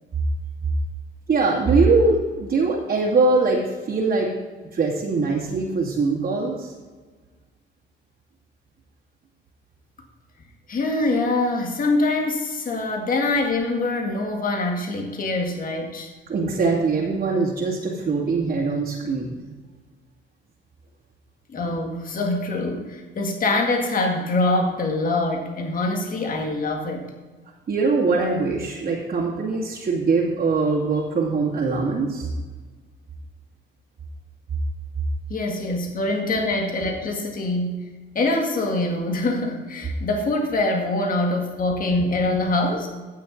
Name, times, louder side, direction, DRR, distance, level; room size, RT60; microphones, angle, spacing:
voice 1, 1.3-4.3 4.7-6.7 16.3-19.5 27.7-32.3, right 3 dB, 50° right, -6 dB, 2.4 m, -22 dB
voice 2, 10.7-16.1 21.5-27.1 35.3-42.9, left 2 dB, 45° left, 2 dB, 1.9 m, -24 dB
15.5 x 6.5 x 3.9 m, 1.3 s
cardioid pair, 90°, 20 cm